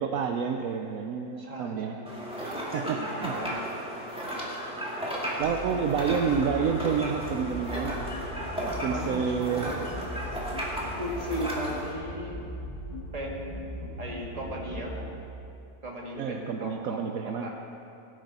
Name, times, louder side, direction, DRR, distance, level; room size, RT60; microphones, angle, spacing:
voice 1, 0.0-2.0 2.7-3.7 4.9-5.1 5.4-8.2 8.6-9.7 16.2-17.5, right 6 dB, 70° right, 5 dB, 1.0 m, -29 dB
voice 2, 1.4-2.1 2.7-3.8 8.9-9.7 11.0-12.4 13.1-13.6 14.0-15.1 15.8-17.5, equal, 25° right, -1 dB, 1.7 m, -37 dB
sound 1, 2.1-11.9, equal, 5° right, 1.9 m, -34 dB
sound 2, 5.4-15.0, equal, 75° left, 3.6 m, -39 dB
17.5 x 10.5 x 4.2 m, 2.7 s
omnidirectional pair, 1.6 m